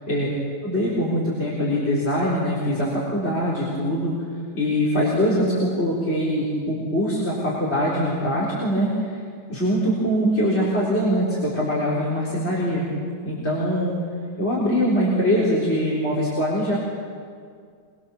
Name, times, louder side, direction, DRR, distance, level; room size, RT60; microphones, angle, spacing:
voice 1, 0.6-4.1 4.5-9.2 9.5-12.8 13.2-13.9 14.4-16.8, equal, 40° left, -6 dB, 4.4 m, -23 dB
24.5 x 23.5 x 7.1 m, 2.1 s
omnidirectional pair, 1.8 m